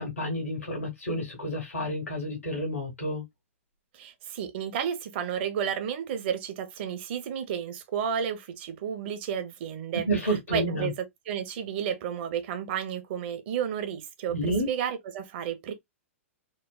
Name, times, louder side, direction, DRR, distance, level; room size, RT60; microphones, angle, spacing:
voice 1, 0.0-3.2 10.1-10.9 14.3-14.7, right 1 dB, 85° left, 1.2 m, -30 dB
voice 2, 3.9-10.1 10.5-10.9 11.3-15.7, right 8 dB, 50° right, 0.7 m, -32 dB
3.1 x 2.1 x 2.2 m
hypercardioid pair, 110°, 7 cm